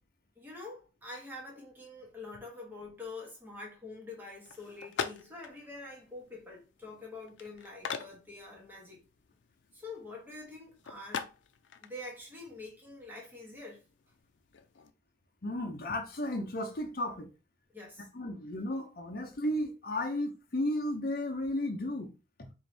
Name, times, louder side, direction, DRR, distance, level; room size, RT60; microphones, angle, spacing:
voice 1, 0.4-9.0 9.7-11.3 11.8-13.8 17.7-18.1, left 2 dB, 10° right, 1.1 m, -46 dB
sound 1, 4.5-14.9, left 6 dB, 90° left, 0.4 m, -44 dB
voice 2, 15.4-17.3 18.1-22.1 22.4-22.5, left 1 dB, 50° left, 0.7 m, -34 dB
4.5 x 2.6 x 3.3 m
head